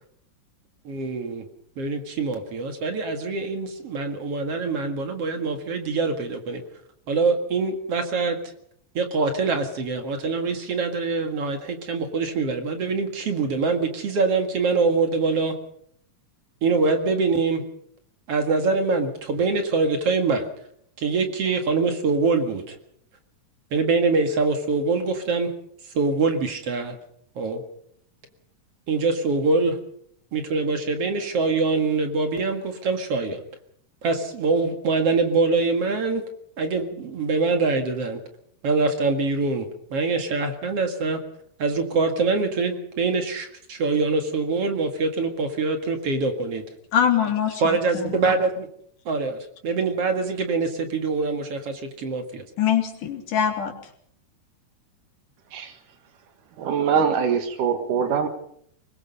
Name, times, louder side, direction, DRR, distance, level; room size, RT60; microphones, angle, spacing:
voice 1, 0.8-1.5 1.8-6.6 7.1-8.5 8.9-15.5 16.6-17.6 18.3-20.5 21.0-22.8 23.7-25.5 25.9-27.0 27.4-27.6 28.9-29.8 30.3-33.4 34.0-36.2 36.6-38.2 38.6-41.2 41.6-46.6 47.6-48.7 49.1-52.4, right 4 dB, 50° right, 6 dB, 2.7 m, -24 dB
voice 2, 46.9-48.3 52.6-53.7, left 9 dB, 90° left, 3 dB, 4.1 m, -23 dB
voice 3, 56.6-58.3, right 7 dB, 90° right, 8 dB, 3.1 m, -23 dB
23.5 x 20.5 x 5.4 m, 0.67 s
omnidirectional pair, 3.5 m